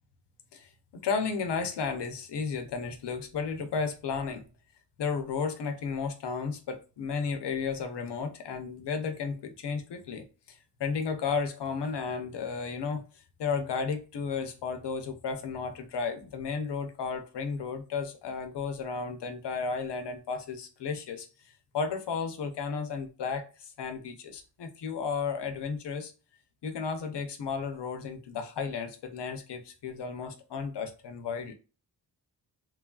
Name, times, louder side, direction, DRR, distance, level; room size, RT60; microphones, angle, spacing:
voice 1, 0.5-4.4 5.0-10.3 10.8-13.0 13.4-21.3 21.7-26.1 26.6-31.5, left 5 dB, 90° left, 0.7 m, -33 dB
3.1 x 2.3 x 2.3 m
cardioid pair, 65°, 40 cm